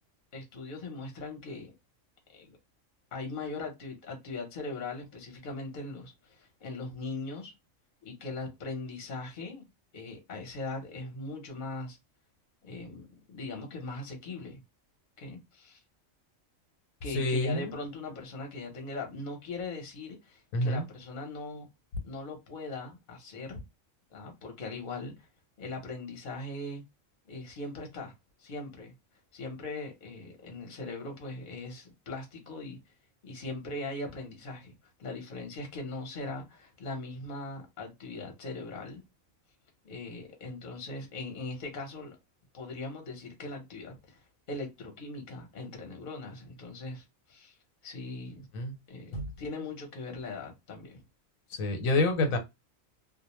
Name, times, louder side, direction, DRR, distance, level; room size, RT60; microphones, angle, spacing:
voice 1, 0.3-1.7 2.3-2.6 3.1-7.5 8.0-12.0 12.6-14.6 15.2-15.8 17.0-21.7 22.0-23.6 24.1-25.3 25.6-26.8 27.3-28.1 28.4-28.9 29.3-32.8 33.2-34.7 35.0-39.0 39.8-42.2 42.5-47.6 47.8-48.5 48.9-51.0, left 3 dB, 45° left, 0.8 m, -40 dB
voice 2, 17.1-17.8 20.5-20.8 48.5-48.7 49.1-49.3 51.5-52.4, left 2 dB, 85° left, 1.1 m, -28 dB
2.4 x 2.0 x 2.9 m
omnidirectional pair, 1.4 m